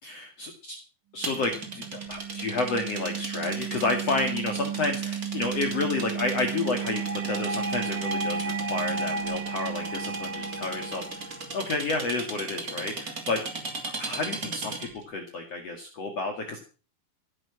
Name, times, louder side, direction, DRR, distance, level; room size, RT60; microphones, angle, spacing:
voice 1, 0.0-0.8 1.1-11.3 11.5-13.4 14.0-16.6, left 3 dB, 45° left, 3 dB, 3.0 m, -30 dB
sound 1, 1.2-15.0, right 3 dB, 25° right, 3.0 m, -38 dB
sound 2, 1.2-11.3, right 9 dB, 80° right, 1.1 m, -35 dB
sound 3, 6.5-11.5, right 1 dB, 45° right, 1.7 m, -35 dB
16.0 x 8.6 x 7.1 m, 0.35 s
omnidirectional pair, 4.2 m